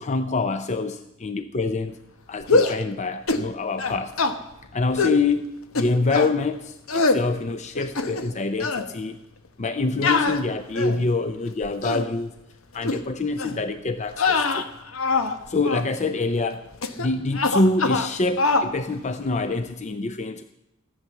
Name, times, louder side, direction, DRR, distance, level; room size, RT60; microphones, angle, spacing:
voice 1, 0.0-2.0 2.3-4.1 4.7-9.2 9.6-12.3 12.7-14.6 15.5-16.6 17.0-20.4, left 3 dB, 35° left, 10 dB, 0.6 m, -26 dB
sound 1, 2.4-2.8 3.3-3.5 3.8-4.3 5.0-5.2 5.7-6.3 6.9-7.2 7.7-8.3 8.6-8.9 10.0-11.1 11.6-12.1 12.8-13.0 13.4-13.6 14.1-15.4 15.6-15.9 16.8-17.1 17.3-18.1 18.4-18.7, left 3 dB, 80° left, 1.2 m, -23 dB
15.0 x 11.0 x 7.2 m, 0.94 s
head